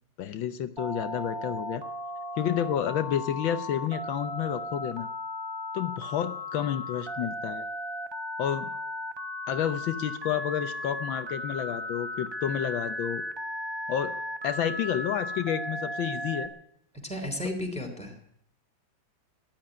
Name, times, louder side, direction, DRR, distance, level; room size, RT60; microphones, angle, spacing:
voice 1, 0.2-1.8 2.4-5.1 5.7-7.6 8.4-8.7 9.5-13.2 13.9-14.1 14.4-16.5, left 9 dB, 80° left, 10 dB, 1.6 m, -30 dB
Telephone, 0.8-16.5, left 1 dB, 20° right, 0.6 m, -36 dB
voice 2, 17.0-18.2, left 1 dB, 5° left, 2 dB, 3.1 m, -34 dB
13.5 x 10.5 x 9.8 m, 0.72 s
omnidirectional pair, 2.1 m